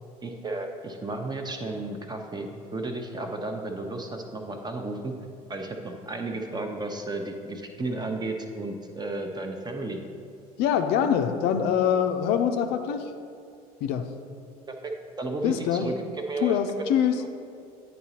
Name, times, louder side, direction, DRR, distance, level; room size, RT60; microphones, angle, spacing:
voice 1, 0.2-5.1 5.5-10.0 14.8-14.9 15.2-15.9 16.3-16.8 17.1-17.3, right 2 dB, 20° right, 3 dB, 0.8 m, -33 dB
voice 2, 10.6-13.1 13.8-14.1 15.4-15.9 16.4-17.2, left 8 dB, 60° left, 6 dB, 0.5 m, -24 dB
9.4 x 4.0 x 2.9 m, 2.4 s
hypercardioid pair, 65°, 20 cm